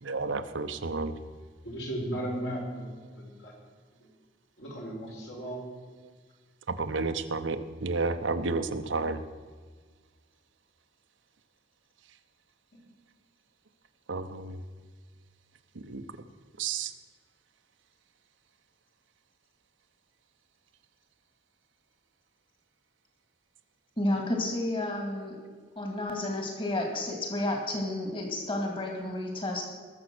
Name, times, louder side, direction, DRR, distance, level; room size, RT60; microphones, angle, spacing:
voice 1, 0.0-1.2 6.0-6.1 6.7-9.2 14.1-14.6 15.7-16.0 16.6-16.9, right 3 dB, 80° right, 9 dB, 0.9 m, -31 dB
voice 2, 1.6-2.9 3.1-3.5 4.0-4.1 4.6-5.6 12.7-12.8, right 1 dB, 65° left, -2 dB, 4.2 m, -36 dB
voice 3, 24.0-25.4 25.8-29.6, left 1 dB, 25° left, 1 dB, 2.2 m, -31 dB
20.0 x 7.1 x 6.1 m, 1.5 s
head